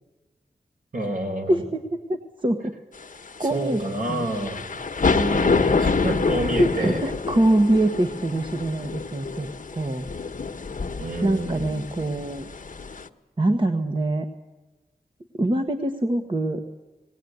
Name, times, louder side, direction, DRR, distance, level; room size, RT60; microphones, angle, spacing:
voice 1, 0.9-1.6 3.4-4.6 5.0-7.0 11.0-11.9, right 2 dB, 60° right, 2 dB, 4.7 m, -28 dB
voice 2, 1.5-2.8 3.4-4.3 6.5-10.0 11.2-12.5 13.4-14.3 15.3-16.6, right 1 dB, 30° right, 6 dB, 1.3 m, -24 dB
sound 1, 3.0-13.1, left 4 dB, 60° left, 1.1 m, -27 dB
18.5 x 18.5 x 9.4 m, 1.1 s
wide cardioid pair, 85°, 16 cm